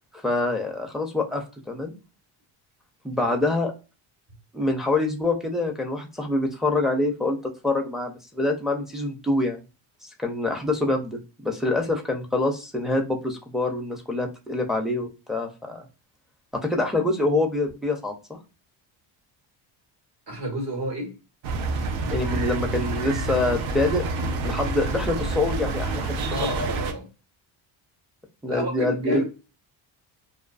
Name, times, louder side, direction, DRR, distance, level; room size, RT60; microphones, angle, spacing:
voice 1, 0.1-1.9 3.0-3.7 4.5-7.4 7.6-9.6 10.2-15.8 16.5-18.4 22.1-26.1 26.4-26.5 28.4-29.2, left 2 dB, ahead, 0.4 m, -26 dB
voice 2, 20.3-21.1 26.3-27.1 28.5-29.2, right 1 dB, 60° right, 1.3 m, -29 dB
sound 1, 21.4-26.9, right 3 dB, 85° right, 0.6 m, -28 dB
2.4 x 2.3 x 2.3 m
cardioid pair, 110°, 46 cm